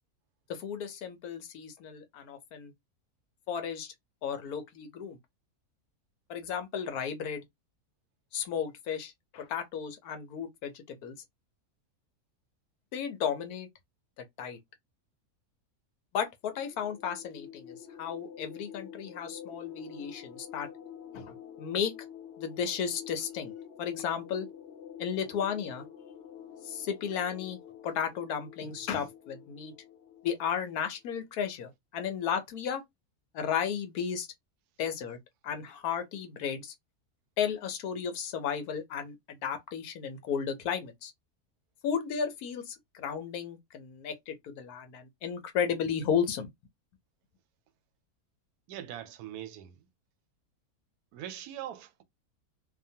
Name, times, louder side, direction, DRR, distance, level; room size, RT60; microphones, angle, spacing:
voice 1, 0.5-2.7 3.5-3.9 4.2-5.2 6.3-7.4 8.3-11.2 12.9-13.7 14.4-14.6 16.1-20.7 21.1-21.9 22.4-23.5 23.8-24.5 25.0-25.9 26.6-27.6 27.8-29.7 30.2-32.8 33.3-34.3 34.8-35.2 35.4-36.7 37.4-41.1 41.8-46.5, left 7 dB, 85° left, 1.2 m, -34 dB
sound 1, 16.5-30.8, left 9 dB, 60° left, 0.7 m, -48 dB
voice 2, 48.7-49.9 51.1-52.0, right 11 dB, 85° right, 1.1 m, -42 dB
2.8 x 2.1 x 2.7 m
omnidirectional pair, 1.6 m